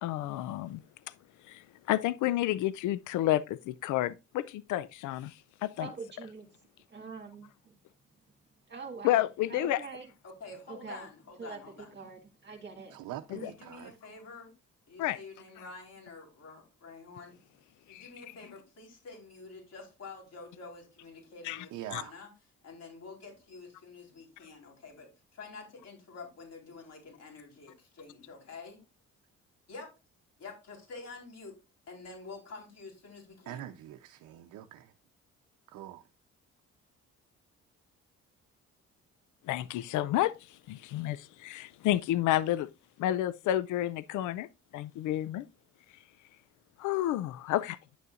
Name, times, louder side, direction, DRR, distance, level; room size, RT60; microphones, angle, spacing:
voice 1, 0.0-0.8 1.5-5.9 9.0-9.8 13.3-13.5 15.0-15.2 17.9-18.1 21.4-21.7 21.9-22.0 39.5-42.7 43.0-44.5 44.7-45.4 46.8-47.8, left 14 dB, 85° left, 0.5 m, -30 dB
voice 2, 5.8-6.5 6.9-7.8 8.7-9.2 9.5-10.1 10.7-11.1 11.4-11.6 11.9-12.9 13.3-13.5, right 5 dB, 35° right, 2.0 m, -44 dB
voice 3, 10.2-11.9 13.3-14.5 14.9-17.3 17.9-22.3 22.6-28.8 29.7-29.9 30.4-31.6 31.9-33.7, left 4 dB, 55° left, 4.2 m, -48 dB
voice 4, 12.9-13.9 21.7-22.1 33.5-34.9 35.7-36.0, right 13 dB, 90° right, 0.7 m, -44 dB
10.5 x 6.7 x 2.5 m
cardioid pair, 90°, 30 cm